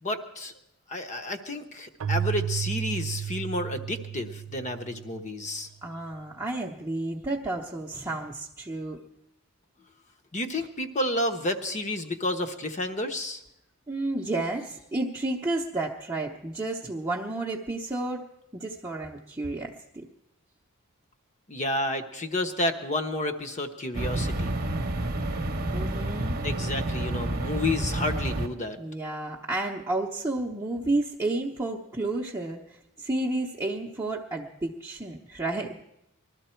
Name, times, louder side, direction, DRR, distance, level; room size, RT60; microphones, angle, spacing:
voice 1, 0.0-0.5 0.9-5.7 10.3-13.4 21.5-24.6 26.4-28.8, left 1 dB, 35° left, 7 dB, 1.0 m, -30 dB
Keyboard (musical), 2.0-5.5, right 9 dB, 65° right, 0.5 m, -33 dB
voice 2, 5.8-9.0 13.9-18.3 18.5-20.0 25.7-26.4 28.8-35.8, right 2 dB, 15° right, -2 dB, 0.9 m, -31 dB
sound 1, 23.9-28.5, right 1 dB, 45° right, 1.0 m, -29 dB
20.5 x 13.0 x 4.5 m, 0.82 s
head